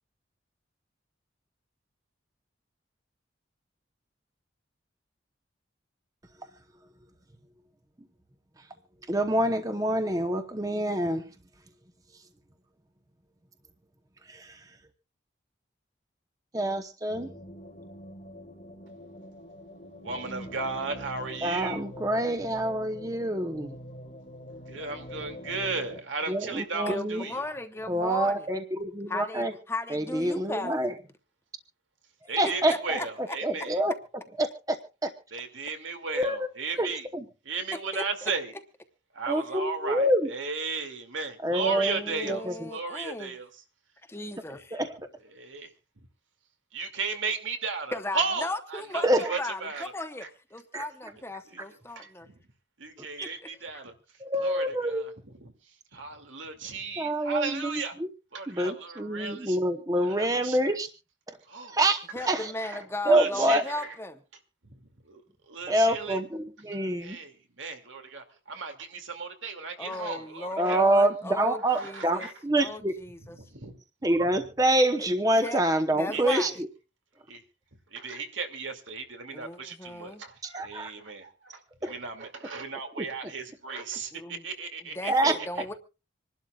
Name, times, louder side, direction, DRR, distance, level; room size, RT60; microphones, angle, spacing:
voice 1, 9.1-11.3 12.1-12.2 14.2-14.8 16.5-17.3 21.4-23.7 26.3-27.3 27.9-29.5 29.9-30.9 32.4-33.9 34.4-34.8 35.0-35.1 36.1-36.5 36.8-37.2 39.3-40.3 41.4-42.7 44.7-45.0 49.0-49.4 50.7-50.8 53.0-53.4 54.2-55.1 57.0-58.1 58.5-60.9 61.3-61.4 61.7-62.0 62.3-62.5 63.0-63.6 65.7-67.2 70.6-72.9 74.0-76.7 80.5-80.9 81.8-81.9 83.0-83.1 85.1-85.4, right 1 dB, 20° right, 0.9 m, -26 dB
sound 1, 17.1-26.0, equal, 40° left, 1.7 m, -44 dB
voice 2, 20.0-21.8 24.7-27.4 32.3-33.8 35.3-37.1 37.5-38.5 39.1-43.5 45.3-45.7 46.7-49.9 50.2-50.3 51.5-52.4 52.8-53.9 54.4-54.6 55.9-57.9 58.3-59.6 60.1-60.6 61.5-61.8 62.2-62.3 62.6-62.8 63.1-63.9 64.6-64.8 65.0-66.2 66.7-70.9 71.8-72.3 73.4-73.8 76.1-76.5 77.3-77.4 77.9-85.1, right 4 dB, 80° right, 2.5 m, -35 dB
voice 3, 26.9-28.5 29.1-30.7 32.7-33.4 37.9-38.3 41.6-43.3 44.1-44.8 47.9-52.3 53.4-53.8 62.1-64.2 69.8-72.2 72.6-72.8 75.0-75.1 75.4-75.6 76.0-76.5 79.3-80.2 84.1-84.4 85.0-85.7, left 2 dB, 15° left, 0.9 m, -36 dB
26.5 x 12.0 x 2.4 m
head